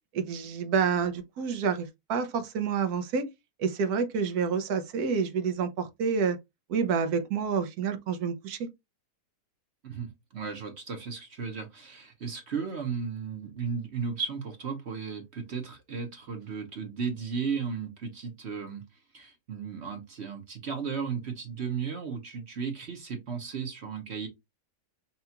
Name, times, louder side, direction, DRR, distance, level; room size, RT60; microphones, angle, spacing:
voice 1, 0.1-3.3 3.6-6.4 6.7-8.7, right 6 dB, 80° right, 1.3 m, -28 dB
voice 2, 9.8-18.8 19.1-24.3, right 6 dB, 50° right, 1.0 m, -35 dB
5.6 x 2.4 x 2.8 m
omnidirectional pair, 1.6 m